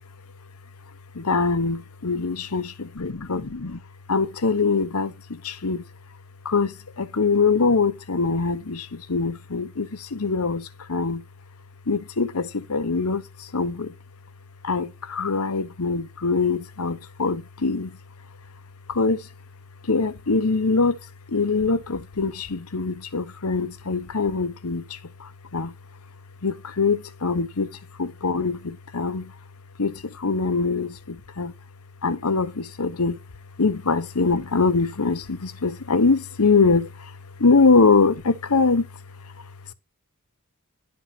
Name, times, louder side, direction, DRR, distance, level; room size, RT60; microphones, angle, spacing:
voice 1, 1.1-3.8 4.1-5.8 6.4-11.2 11.9-13.9 14.6-18.0 18.9-19.3 19.8-21.0 21.3-25.8 26.4-29.3 29.8-31.5 32.0-33.2 33.6-39.7, left 4 dB, 80° left, 1.0 m, -23 dB
11.5 x 4.7 x 5.9 m
head